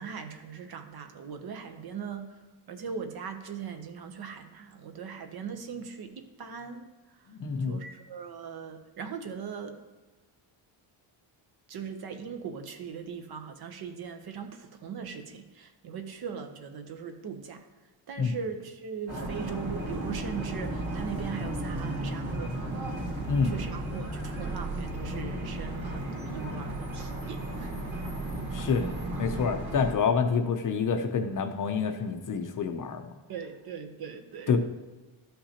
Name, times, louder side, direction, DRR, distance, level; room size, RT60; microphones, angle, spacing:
voice 1, 0.0-2.4 2.7-6.9 7.7-9.8 11.7-17.7 18.1-22.5 23.4-27.7 33.3-34.6, right 6 dB, 45° right, 7 dB, 0.8 m, -39 dB
voice 2, 7.3-7.8 18.2-18.3 23.3-23.5 28.5-28.8 29.2-33.1 34.5-34.6, left 5 dB, 40° left, 6 dB, 0.6 m, -27 dB
sound 1, 19.1-29.9, right 1 dB, 65° right, 2.2 m, -34 dB
12.5 x 5.6 x 2.8 m, 1.2 s
cardioid pair, 165°, 50 cm